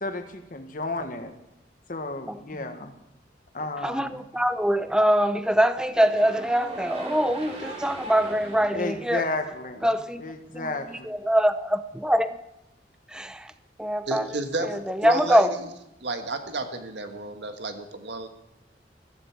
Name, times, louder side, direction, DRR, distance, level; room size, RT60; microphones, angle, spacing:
voice 1, 0.0-1.3 1.9-2.9 3.5-4.2 8.7-9.9 10.2-11.1, left 2 dB, 50° left, 7 dB, 1.5 m, -32 dB
voice 2, 3.8-9.2 9.8-10.2 10.5-12.4 13.1-13.5 13.8-15.5, equal, 5° right, 11 dB, 0.6 m, -24 dB
sound 1, 5.9-10.1, right 1 dB, 35° right, 3.1 m, -40 dB
voice 3, 14.1-15.7 16.0-18.3, right 2 dB, 80° right, 7 dB, 1.6 m, -32 dB
15.0 x 14.0 x 4.7 m, 0.90 s
head